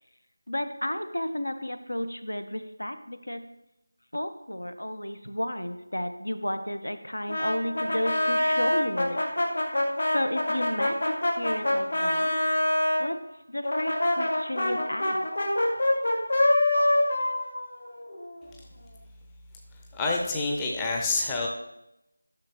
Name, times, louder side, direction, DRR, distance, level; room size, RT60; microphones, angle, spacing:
voice 1, 0.5-3.5 4.1-9.2 10.1-12.4 13.0-13.2 13.5-15.3, left 1 dB, 75° left, 10 dB, 0.9 m, -32 dB
Brass instrument, 7.3-13.0 13.6-18.4, left 1 dB, 55° left, 2.0 m, -25 dB
voice 2, 19.9-21.5, left 3 dB, 10° left, -1 dB, 0.6 m, -27 dB
11.5 x 6.5 x 3.0 m, 0.86 s
figure-of-eight pair, 165°, 0 cm